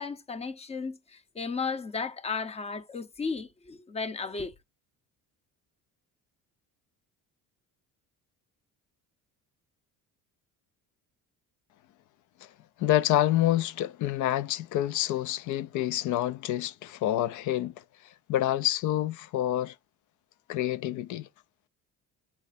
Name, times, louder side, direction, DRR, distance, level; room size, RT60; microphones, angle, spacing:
voice 1, 0.0-4.5, left 4 dB, 20° left, 0.7 m, -34 dB
voice 2, 12.8-17.7 18.3-19.7 20.5-21.3, left 13 dB, 60° left, 0.5 m, -27 dB
8.3 x 3.2 x 4.1 m
cardioid pair, 145°, 35 cm